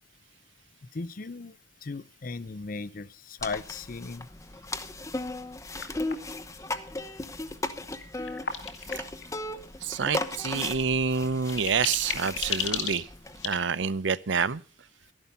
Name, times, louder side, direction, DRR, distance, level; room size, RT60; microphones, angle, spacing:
voice 1, 0.9-1.6 1.8-4.3, left 4 dB, 50° left, 18 dB, 0.6 m, -37 dB
sound 1, 3.4-13.5, left 2 dB, 15° left, 0.8 m, -36 dB
sound 2, 5.8-6.3 8.0-9.4 10.8-10.9 11.2-13.6, left 7 dB, 70° left, 2.2 m, -33 dB
voice 2, 9.8-13.0 13.4-14.6, right 5 dB, 80° right, 17 dB, 0.7 m, -27 dB
13.5 x 11.0 x 5.5 m, 0.35 s
head